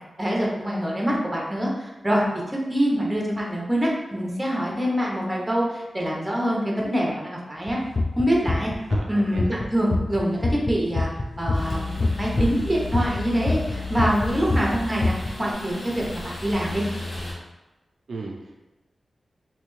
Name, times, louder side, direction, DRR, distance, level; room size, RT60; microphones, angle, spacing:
voice 1, 0.2-7.8 8.2-8.7 9.1-11.1 11.4-16.8, equal, 15° right, -3 dB, 0.7 m, -25 dB
sound 1, 7.7-9.6 9.9-13.7 14.0-15.3, left 2 dB, 30° left, 0.3 m, -24 dB
voice 2, 8.9-9.5 18.1-18.5, right 3 dB, 70° right, 0 dB, 0.4 m, -36 dB
sound 2, 11.5-17.3, left 2 dB, 70° left, 0.9 m, -33 dB
3.2 x 2.7 x 3.1 m, 1.1 s
wide cardioid pair, 105°, 0 cm